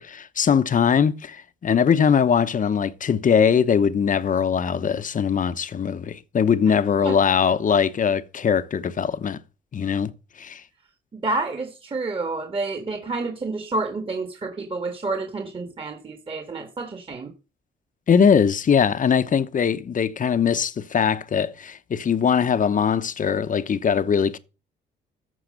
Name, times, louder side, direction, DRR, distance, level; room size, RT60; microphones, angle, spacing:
voice 1, 0.0-9.4 9.7-10.1 10.4-10.6 18.1-24.4, left 7 dB, 40° left, 1.0 m, -21 dB
voice 2, 11.1-17.3, right 3 dB, 25° right, 1.7 m, -29 dB
14.0 x 4.8 x 6.6 m
cardioid pair, 90°, 20 cm